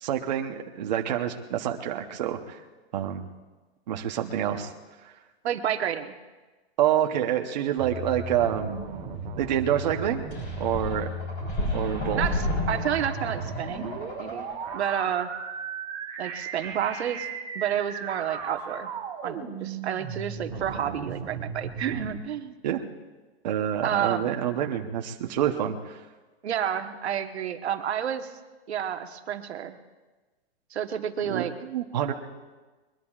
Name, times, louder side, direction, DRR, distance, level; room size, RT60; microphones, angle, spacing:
voice 1, 0.0-2.6 2.9-3.3 3.9-4.7 5.0-5.1 6.8-8.8 9.4-10.2 10.6-11.1 11.7-12.2 22.6-22.8 23.4-26.0 31.2-31.4 31.7-32.1, right 10 dB, 45° right, 4 dB, 0.9 m, -27 dB
voice 2, 5.4-6.2 12.2-13.9 14.2-14.5 14.7-15.3 16.2-17.3 17.5-18.9 19.2-22.6 23.8-24.3 26.4-28.3 28.7-29.8 30.7-31.5, right 9 dB, 85° right, 7 dB, 1.3 m, -30 dB
sound 1, 7.8-22.1, right 4 dB, 15° right, 1.1 m, -36 dB
sound 2, 10.3-14.9, left 2 dB, 25° left, 4.0 m, -32 dB
22.0 x 21.5 x 2.4 m, 1.2 s
hypercardioid pair, 175°, 32 cm